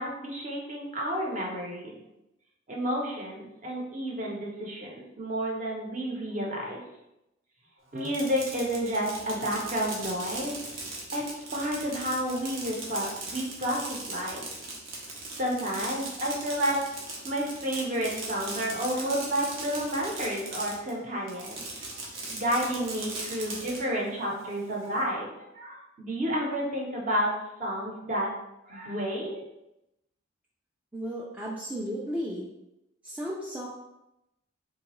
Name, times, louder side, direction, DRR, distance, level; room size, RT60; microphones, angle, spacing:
voice 1, 0.0-1.9 2.7-6.8 7.9-10.6 11.1-14.5 15.3-16.8 17.2-25.3 25.5-28.3 28.7-29.4, equal, 40° right, -2 dB, 0.7 m, -31 dB
Fireworks, 8.0-20.9 21.3-23.8, right 2 dB, 80° right, 0.8 m, -38 dB
voice 2, 30.9-32.5 33.0-33.7, equal, 5° right, -5 dB, 0.3 m, -34 dB
3.7 x 2.3 x 2.9 m, 0.89 s
head